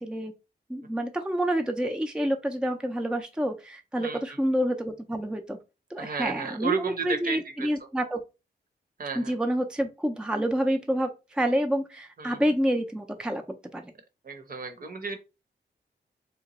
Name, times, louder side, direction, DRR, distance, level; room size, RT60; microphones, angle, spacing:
voice 1, 0.0-0.3 0.7-5.6 5.9-8.2 9.1-13.4 13.7-13.9, equal, 5° right, 0.4 m, -28 dB
voice 2, 4.0-4.4 6.0-7.9 9.0-9.4 12.2-12.4 14.2-15.2, right 5 dB, 50° right, 0.8 m, -33 dB
2.9 x 2.2 x 4.0 m
cardioid pair, 80°, 18 cm